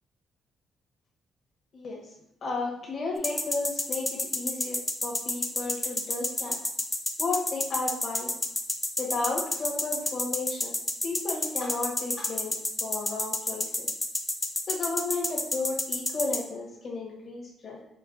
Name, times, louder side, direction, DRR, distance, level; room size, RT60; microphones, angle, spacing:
voice 1, 1.7-2.1 2.4-6.6 7.2-8.3 9.0-10.7 11.0-12.5 12.8-13.9 14.7-17.8, left 3 dB, 55° left, -2 dB, 1.1 m, -33 dB
sound 1, 3.2-16.4, left 2 dB, 15° left, 0.5 m, -28 dB
5.4 x 2.1 x 2.4 m, 0.79 s
cardioid pair, 90°, 0 cm